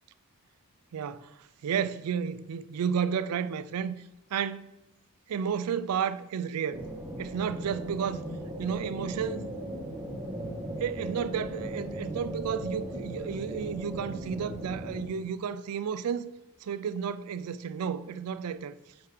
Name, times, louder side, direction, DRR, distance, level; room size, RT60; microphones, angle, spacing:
voice 1, 0.9-4.0 4.3-4.7 5.3-6.8 7.2-8.2 8.6-9.5 10.8-16.3 16.6-18.7, right 7 dB, 85° right, 0.4 m, -32 dB
sound 1, 6.7-15.0, right 1 dB, 10° right, 1.1 m, -38 dB
8.9 x 3.5 x 5.0 m
head